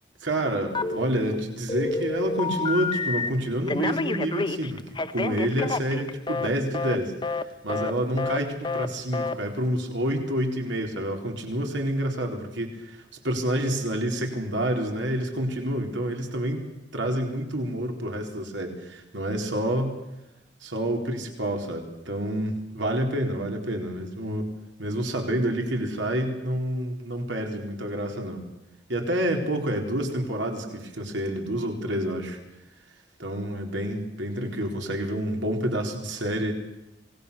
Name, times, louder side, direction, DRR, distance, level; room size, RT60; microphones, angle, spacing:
voice 1, 0.2-4.8 5.1-7.1 7.6-16.7 16.9-19.9 20.6-24.5 24.8-28.5 28.9-32.4 33.2-36.5, right 1 dB, 85° right, 3 dB, 4.1 m, -28 dB
Telephone, 0.7-1.3 1.7-3.3 3.7-6.5 6.7-7.0 7.2-7.4 7.7-8.4 8.6-8.9 9.1-9.3, left 3 dB, 25° left, 1.0 m, -28 dB
27.0 x 19.5 x 6.9 m, 0.95 s
head